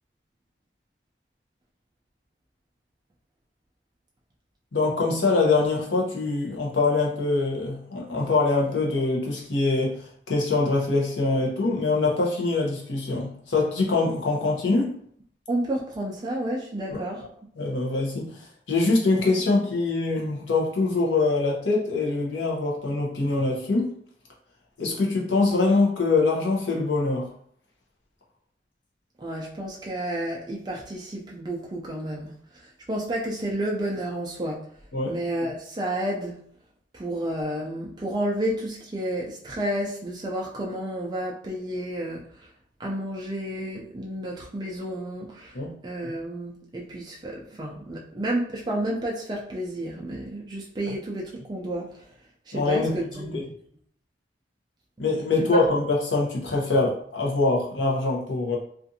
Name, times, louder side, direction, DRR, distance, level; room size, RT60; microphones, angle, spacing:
voice 1, 4.7-14.9 16.9-17.0 17.6-18.4 18.7-23.9 24.8-27.3 34.9-35.2 45.5-45.7 52.5-52.9 53.3-53.4 55.0-58.6, left 3 dB, 80° left, -2 dB, 0.7 m, -24 dB
voice 2, 15.5-17.3 29.2-34.6 35.1-36.4 36.9-42.5 42.8-45.6 45.8-52.0 52.5-53.4 55.5-55.6, right 1 dB, 25° right, -3 dB, 0.3 m, -31 dB
2.5 x 2.4 x 2.6 m, 0.63 s
head